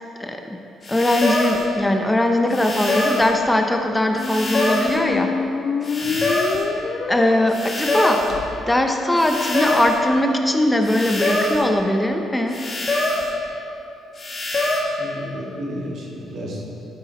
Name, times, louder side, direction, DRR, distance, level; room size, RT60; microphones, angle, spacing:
voice 1, 0.2-0.6 0.9-5.3 7.1-8.2 8.7-12.6, left 1 dB, 10° left, 4 dB, 0.7 m, -20 dB
sound 1, 0.8-1.7 2.5-3.3 4.2-5.0 5.8-6.7 7.5-8.3 9.2-10.0 10.8-11.7 12.5-13.3 14.2-14.8, left 2 dB, 30° left, 1.9 m, -24 dB
sound 2, 4.0-9.9, left 5 dB, 55° left, 0.4 m, -29 dB
voice 2, 6.0-6.3 14.9-16.6, equal, 65° right, -3 dB, 2.1 m, -32 dB
12.5 x 5.6 x 4.1 m, 2.9 s
cardioid pair, 90°, 0 cm